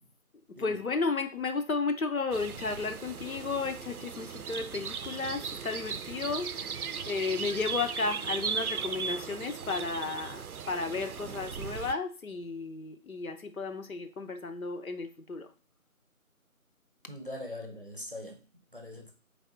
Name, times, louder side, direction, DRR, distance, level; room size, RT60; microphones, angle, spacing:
voice 1, 0.5-15.5, left 4 dB, 70° left, 0.7 m, -33 dB
sound 1, 2.3-11.9, right 6 dB, 80° right, 0.5 m, -37 dB
voice 2, 17.1-18.4 18.7-19.1, left 1 dB, 40° right, 0.7 m, -41 dB
4.0 x 3.4 x 3.9 m
figure-of-eight pair, 170°, 43 cm